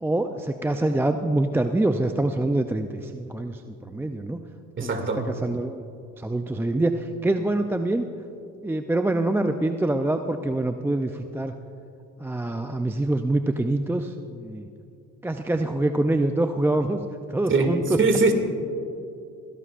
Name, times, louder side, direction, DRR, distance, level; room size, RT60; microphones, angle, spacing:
voice 1, 0.0-4.4 4.8-5.8 6.2-8.0 8.6-11.5 12.2-14.7 15.2-17.0 17.3-18.0, right 2 dB, 5° right, 7 dB, 0.5 m, -25 dB
voice 2, 4.8-5.2 17.5-17.7 18.0-18.3, right 3 dB, 35° right, 4 dB, 2.4 m, -21 dB
21.5 x 17.0 x 2.5 m, 2.7 s
supercardioid pair, 80°, 32 cm